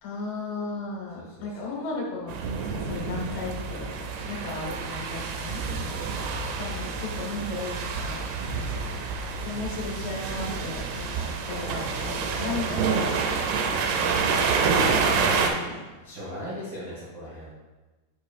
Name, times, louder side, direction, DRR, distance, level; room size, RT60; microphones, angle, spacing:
voice 1, 0.0-2.3 2.6-3.9 4.3-5.6 6.6-8.3 9.4-13.3 15.2-15.8, left 4 dB, 70° left, -2 dB, 3.4 m, -35 dB
voice 2, 1.1-1.7 5.8-6.6 8.4-8.7 13.6-14.0 15.1-15.7 16.0-17.5, equal, 55° right, -9 dB, 1.3 m, -40 dB
sound 1, 2.3-15.5, right 5 dB, 85° right, 2.4 m, -28 dB
8.1 x 7.3 x 2.4 m, 1.2 s
omnidirectional pair, 5.1 m